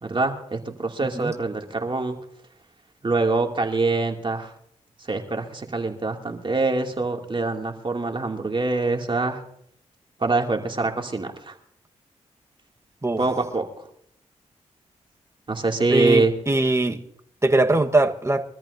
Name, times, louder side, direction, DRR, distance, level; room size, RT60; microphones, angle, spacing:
voice 1, 0.0-2.2 3.0-4.5 5.1-9.4 10.2-11.5 13.2-13.7 15.5-16.3, right 3 dB, 40° right, 2 dB, 2.6 m, -24 dB
voice 2, 1.0-1.3 13.0-13.2 15.9-17.0 17.4-18.4, right 2 dB, 20° right, 6 dB, 1.4 m, -21 dB
23.5 x 13.5 x 2.7 m, 0.69 s
supercardioid pair, 45°, 13 cm